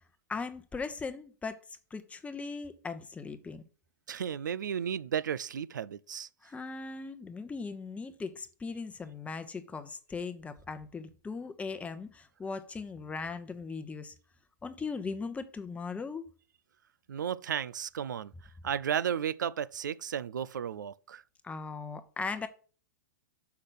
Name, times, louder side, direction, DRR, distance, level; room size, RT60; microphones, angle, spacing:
voice 1, 0.3-1.6 1.9-3.6 6.4-14.1 14.6-16.3 21.4-22.5, left 4 dB, 15° left, 1.0 m, -39 dB
voice 2, 4.1-6.3 17.1-18.3 18.6-21.2, right 8 dB, 80° right, 0.5 m, -33 dB
6.5 x 5.8 x 6.3 m
hypercardioid pair, 105°, 10 cm